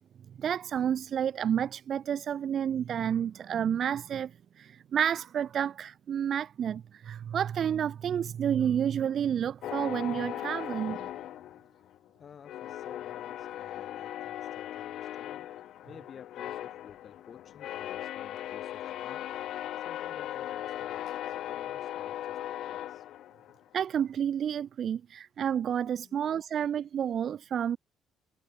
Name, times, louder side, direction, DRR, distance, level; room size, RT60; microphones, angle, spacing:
voice 1, 0.4-11.1 23.7-27.8, right 9 dB, 50° right, 0.3 m, -30 dB
sound 1, 9.6-12.1 12.4-23.7, left 12 dB, 70° left, 0.4 m, -38 dB
voice 2, 11.7-15.5 15.8-19.3 19.8-23.1 25.6-26.2, left 7 dB, 45° left, 2.9 m, -53 dB
cardioid pair, 115°, 0 cm